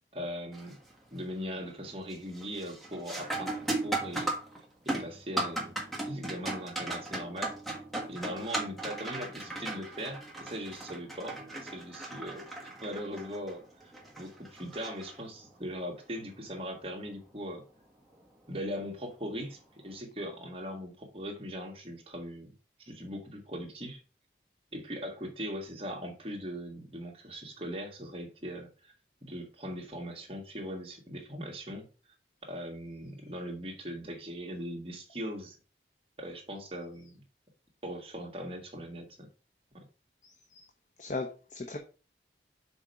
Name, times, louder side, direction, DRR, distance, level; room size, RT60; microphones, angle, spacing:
voice 1, 0.1-0.8 1.1-4.3 4.8-5.8 6.0-7.5 8.1-12.5 12.8-17.6 18.5-22.5 22.9-24.0 24.7-28.9 29.2-31.9 32.4-35.6 36.2-37.2 37.8-39.3, equal, 30° right, 1.6 m, -40 dB
sound 1, 0.5-0.9 1.3-1.8 2.1-15.6 18.1-18.2 19.0-19.3, right 2 dB, ahead, 1.4 m, -37 dB
voice 2, 40.2-40.6 41.0-41.8, left 3 dB, 45° left, 0.8 m, -38 dB
6.1 x 4.4 x 5.3 m
head